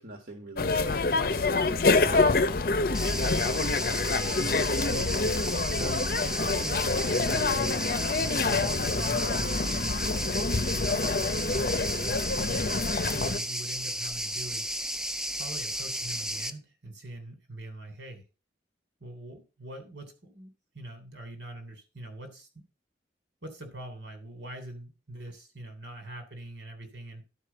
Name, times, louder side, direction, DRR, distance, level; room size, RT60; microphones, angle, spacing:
voice 1, 0.0-1.5 2.0-3.8, right 2 dB, 55° right, 3 dB, 1.6 m, -46 dB
sound 1, 0.6-13.4, left 3 dB, 50° left, 0.6 m, -27 dB
sound 2, 2.9-16.5, equal, 5° right, 0.4 m, -33 dB
voice 2, 4.4-5.2 5.7-10.0 10.7-14.8 15.4-18.2 19.0-22.6 23.4-27.3, right 1 dB, 85° right, 5 dB, 3.2 m, -43 dB
11.5 x 5.1 x 5.7 m, 0.31 s
head